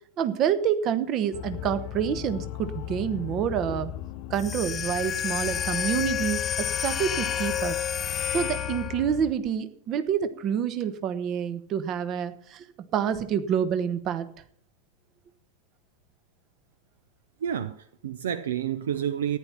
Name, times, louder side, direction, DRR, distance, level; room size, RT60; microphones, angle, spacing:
voice 1, 0.2-3.9 4.3-7.8 8.3-12.6 12.9-14.3, right 8 dB, 35° right, 1.1 m, -27 dB
sound 1, 1.3-9.3, left 12 dB, 45° left, 0.6 m, -37 dB
sound 2, 4.3-9.1, left 9 dB, 25° left, 0.9 m, -30 dB
voice 2, 17.4-19.4, right 9 dB, 60° right, 0.6 m, -29 dB
14.5 x 10.5 x 5.8 m
figure-of-eight pair, 90°, 0 cm